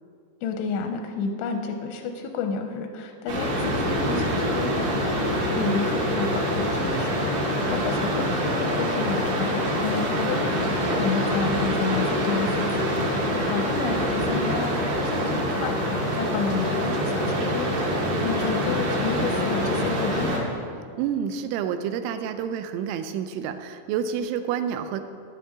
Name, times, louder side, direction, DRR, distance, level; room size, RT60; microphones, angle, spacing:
voice 1, 0.4-20.5, left 5 dB, 85° left, 4 dB, 2.8 m, -31 dB
sound 1, 3.3-20.4, equal, 50° right, 2.8 m, -25 dB
voice 2, 13.1-13.5 20.9-25.0, right 8 dB, 85° right, 9 dB, 2.8 m, -29 dB
14.0 x 11.0 x 3.6 m, 2.3 s
omnidirectional pair, 5.8 m